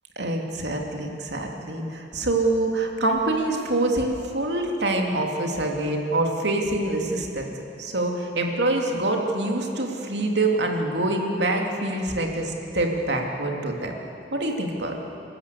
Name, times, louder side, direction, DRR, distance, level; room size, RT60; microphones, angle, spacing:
voice 1, 0.2-7.5 7.8-13.9 14.3-15.0, right 2 dB, 80° right, 1 dB, 2.8 m, -25 dB
29.0 x 13.0 x 8.3 m, 2.9 s
head